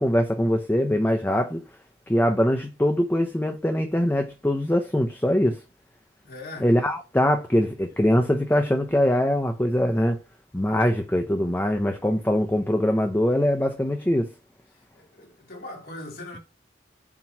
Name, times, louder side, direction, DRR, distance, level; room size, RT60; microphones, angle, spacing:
voice 1, 0.0-1.6 2.1-5.6 6.6-10.2 10.5-14.3, equal, 10° left, 0.6 m, -22 dB
voice 2, 6.2-6.7 14.9-16.4, left 2 dB, 55° left, 2.3 m, -40 dB
7.3 x 3.0 x 5.9 m
head